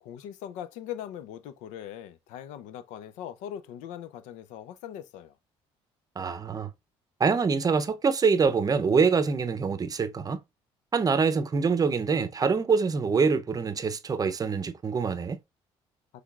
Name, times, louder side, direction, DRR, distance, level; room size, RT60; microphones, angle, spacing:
voice 1, 0.0-5.4, left 10 dB, 80° left, 0.6 m, -40 dB
voice 2, 6.2-6.7 7.2-10.4 10.9-15.4, right 5 dB, 30° right, 0.6 m, -25 dB
5.6 x 3.3 x 2.4 m
supercardioid pair, 85°, 12 cm